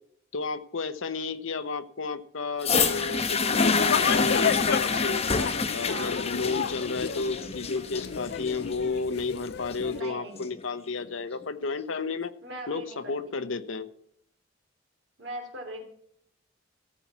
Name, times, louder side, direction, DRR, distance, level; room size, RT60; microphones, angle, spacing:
voice 1, 0.3-5.2 5.7-12.3 12.7-13.9, left 4 dB, 75° left, 10 dB, 0.8 m, -32 dB
sound 1, 2.6-10.6 11.4-11.5, left 4 dB, 30° left, 1.0 m, -28 dB
sound 2, 3.5-10.0, left 7 dB, 55° left, 0.3 m, -31 dB
voice 2, 9.9-10.4 12.4-13.4 15.2-15.8, right 1 dB, 60° right, 0 dB, 2.9 m, -39 dB
14.5 x 7.4 x 5.7 m, 0.70 s
head